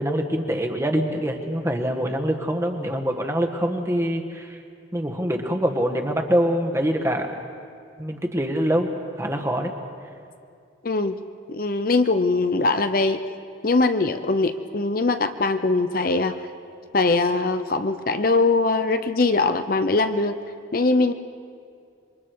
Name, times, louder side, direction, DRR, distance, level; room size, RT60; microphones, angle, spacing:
voice 1, 0.0-4.6 4.9-7.3 8.0-9.7, equal, 15° right, 3 dB, 1.4 m, -24 dB
voice 2, 10.8-11.2 11.5-13.2 13.6-16.4 16.9-20.4 20.7-21.1, left 3 dB, 50° left, 9 dB, 0.7 m, -21 dB
27.5 x 24.0 x 4.7 m, 2.4 s
head